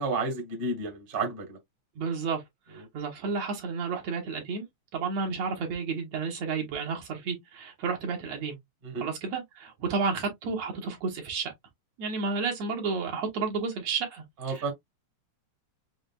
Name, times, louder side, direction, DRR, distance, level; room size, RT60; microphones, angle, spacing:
voice 1, 0.0-1.6 2.8-2.9 8.8-9.0 14.4-14.7, right 3 dB, 30° right, 1.0 m, -31 dB
voice 2, 2.0-2.4 2.9-4.7 4.9-8.6 9.0-11.5 12.0-14.7, right 5 dB, 70° right, 2.4 m, -31 dB
6.4 x 2.5 x 2.3 m
omnidirectional pair, 3.3 m